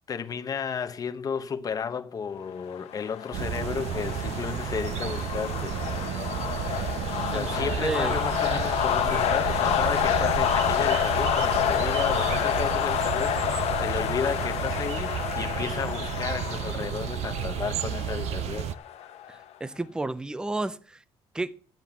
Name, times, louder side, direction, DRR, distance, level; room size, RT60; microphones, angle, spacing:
voice 1, 0.1-6.9 7.2-18.7, left 6 dB, 35° left, 0.9 m, -33 dB
sound 1, 2.7-19.4, left 11 dB, 70° left, 1.2 m, -29 dB
sound 2, 3.3-18.7, right 10 dB, 80° right, 0.6 m, -32 dB
voice 2, 7.3-8.2 19.3-21.0 21.3-21.5, right 2 dB, 5° right, 0.5 m, -32 dB
10.5 x 7.8 x 6.9 m
cardioid pair, 160°, 11 cm